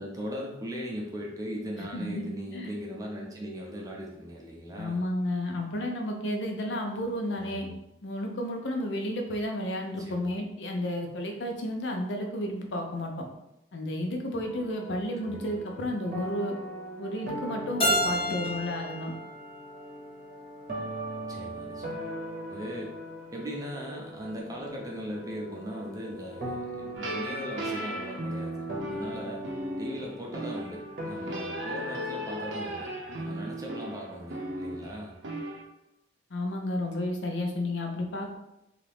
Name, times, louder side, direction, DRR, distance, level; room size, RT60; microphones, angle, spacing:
voice 1, 0.0-5.0 7.2-7.8 10.0-10.3 15.3-15.6 21.3-22.1 22.5-22.9 23.3-29.5 29.8-32.9 33.1-35.2, equal, 20° right, -2 dB, 0.5 m, -39 dB
voice 2, 1.9-2.7 4.8-7.7 8.0-13.1 13.7-16.5 17.0-19.1 36.3-38.4, left 1 dB, 75° left, 2 dB, 0.6 m, -32 dB
sound 1, 14.4-32.8, equal, 45° right, 0.8 m, -40 dB
Keyboard (musical), 17.8-20.6, equal, 30° left, 0.6 m, -31 dB
sound 2, 26.9-35.6, right 1 dB, 80° right, 0.6 m, -37 dB
2.8 x 2.4 x 3.4 m, 0.87 s
head